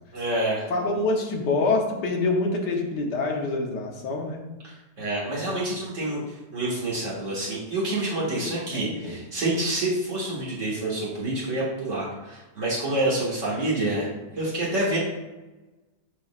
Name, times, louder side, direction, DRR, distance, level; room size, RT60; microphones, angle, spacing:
voice 1, 0.1-0.7 5.0-14.1 14.4-15.0, right 1 dB, 50° right, -6 dB, 2.2 m, -27 dB
voice 2, 0.7-4.4 8.4-9.2, left 3 dB, 85° left, 1 dB, 1.6 m, -26 dB
10.0 x 4.3 x 2.4 m, 1.1 s
omnidirectional pair, 1.8 m